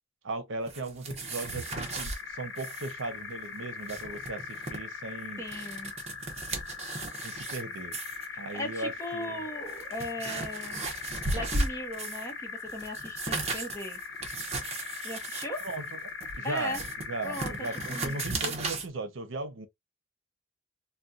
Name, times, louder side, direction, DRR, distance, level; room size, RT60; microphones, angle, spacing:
voice 1, 0.2-5.4 7.2-8.0 8.4-9.4 15.6-16.0 16.4-16.8 17.1-19.7, right 2 dB, 75° right, 0.7 m, -37 dB
sound 1, 0.7-2.2 2.6-2.9 3.2-3.3 3.7-4.8 5.3-7.6 7.9-8.3 9.0-9.1 9.6-12.3 12.7-18.9, right 2 dB, 35° right, 0.8 m, -36 dB
sound 2, 1.1-18.5, left 5 dB, 80° left, 1.1 m, -41 dB
voice 2, 5.4-5.9 8.5-10.8 11.3-14.0 15.0-15.6 16.4-16.8 17.2-18.6, left 1 dB, 15° left, 0.9 m, -38 dB
4.1 x 2.2 x 2.4 m
head